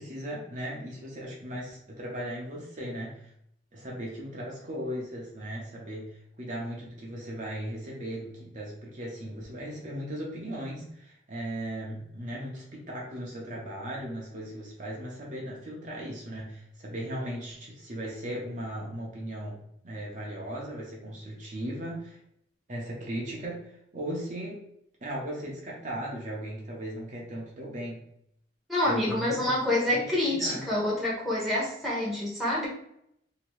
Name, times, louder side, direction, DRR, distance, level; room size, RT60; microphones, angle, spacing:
voice 1, 0.0-3.3 3.7-22.2 22.7-24.6 25.0-28.0 28.9-29.5 29.9-30.6, equal, 40° right, -3 dB, 0.8 m, -37 dB
voice 2, 28.7-32.7, left 1 dB, ahead, -7 dB, 1.0 m, -27 dB
2.8 x 2.8 x 3.0 m, 0.73 s
head